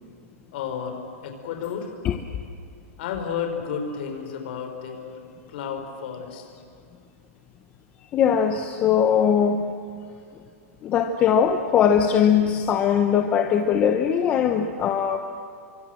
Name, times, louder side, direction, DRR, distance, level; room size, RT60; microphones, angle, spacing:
voice 1, 0.5-1.9 3.0-5.2 5.5-6.4, left 7 dB, 40° left, 4 dB, 4.5 m, -31 dB
voice 2, 8.1-9.7 10.8-15.2, left 8 dB, 15° left, 5 dB, 0.9 m, -20 dB
29.0 x 24.5 x 7.7 m, 2.4 s
supercardioid pair, 175°, 8 cm